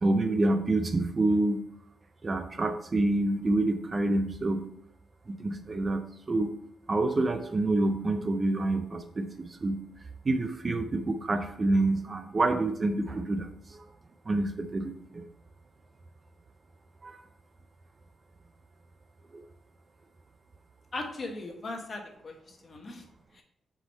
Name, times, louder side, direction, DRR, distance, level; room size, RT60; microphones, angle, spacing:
voice 1, 0.0-1.6 2.2-4.7 5.3-6.5 6.9-9.8 10.3-13.8 14.3-15.2 17.0-17.2 19.3-19.4, right 2 dB, 25° right, 7 dB, 0.4 m, -27 dB
voice 2, 20.9-22.3 22.6-23.0 23.3-23.4, left 2 dB, 35° left, 3 dB, 1.2 m, -38 dB
6.7 x 4.9 x 4.2 m, 0.77 s
wide cardioid pair, 155°, 0 cm